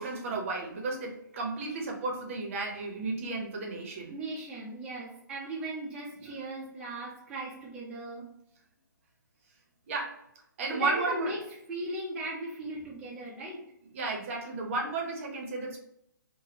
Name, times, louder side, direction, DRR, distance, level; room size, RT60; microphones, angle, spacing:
voice 1, 0.0-4.1 9.9-10.2 10.6-11.3 13.9-15.8, right 3 dB, 40° right, 1 dB, 0.7 m, -33 dB
voice 2, 4.1-8.3 10.7-11.4 11.7-13.6, right 2 dB, 10° right, -7 dB, 0.5 m, -37 dB
3.4 x 2.1 x 2.8 m, 0.78 s
hypercardioid pair, 150°, 11 cm